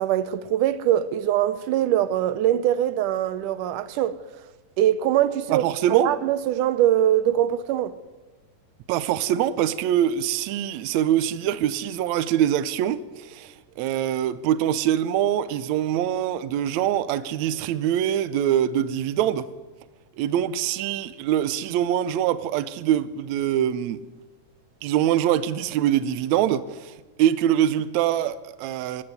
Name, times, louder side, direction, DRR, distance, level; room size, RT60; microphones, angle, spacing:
voice 1, 0.0-4.2 4.8-7.9, right 11 dB, 90° right, 2.5 m, -22 dB
voice 2, 5.5-6.1 8.9-19.5 20.2-24.0 24.8-29.0, right 11 dB, 70° right, 2.0 m, -24 dB
24.0 x 15.0 x 9.6 m
omnidirectional pair, 3.5 m